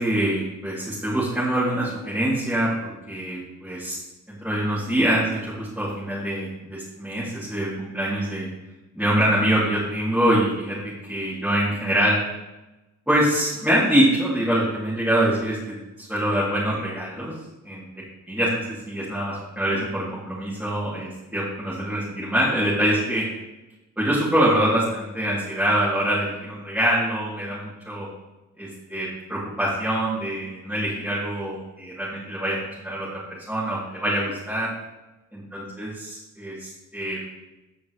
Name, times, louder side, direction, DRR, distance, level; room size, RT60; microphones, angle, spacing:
voice 1, 0.0-4.0 4.3-8.5 8.9-10.8 11.1-12.2 13.1-17.3 17.7-17.8 18.3-23.3 24.0-28.1 28.6-34.7 35.3-37.4, right 1 dB, 5° right, -10 dB, 3.1 m, -24 dB
15.0 x 5.9 x 3.3 m, 1.0 s
cardioid pair, 70°, 33 cm